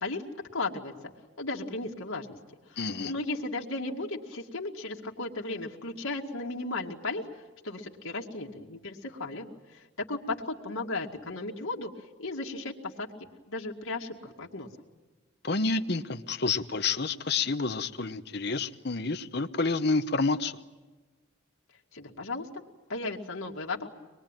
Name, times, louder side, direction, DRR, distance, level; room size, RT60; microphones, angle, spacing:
voice 1, 0.5-0.9 1.4-2.4 2.7-13.1 13.5-14.7 21.9-22.6 22.9-23.9, left 2 dB, 85° left, -1 dB, 2.1 m, -35 dB
voice 2, 2.8-3.1 15.4-20.5, left 3 dB, 50° left, 9 dB, 1.0 m, -29 dB
24.5 x 21.5 x 9.0 m, 1.2 s
head